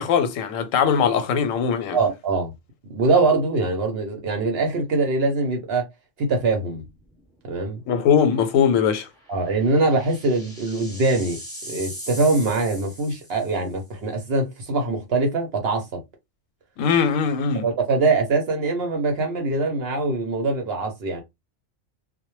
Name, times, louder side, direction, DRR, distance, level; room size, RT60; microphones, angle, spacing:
voice 1, 0.0-2.0 7.9-9.1 16.8-17.6, left 7 dB, 90° left, 1.0 m, -20 dB
voice 2, 1.9-2.5 2.9-5.9 6.2-6.8 7.4-7.8 9.3-11.4 11.7-16.0 17.6-21.2, right 3 dB, 60° right, 0.8 m, -23 dB
sound 1, 6.9-7.2 7.5-7.6 9.1-13.7, equal, 5° left, 0.9 m, -40 dB
2.1 x 2.1 x 2.9 m
omnidirectional pair, 1.3 m